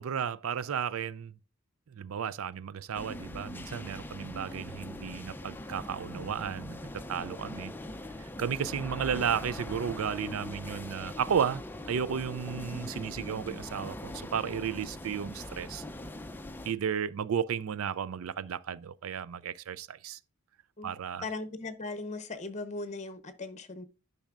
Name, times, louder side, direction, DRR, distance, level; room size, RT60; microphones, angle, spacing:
voice 1, 0.0-1.3 1.9-7.7 8.2-11.6 11.9-15.8 16.6-20.2 20.8-21.2, right 7 dB, 90° right, 0.4 m, -33 dB
sound 1, 2.9-16.7, left 1 dB, 10° left, 0.5 m, -41 dB
voice 2, 21.2-23.8, left 3 dB, 35° left, 0.9 m, -38 dB
10.5 x 5.4 x 2.4 m
head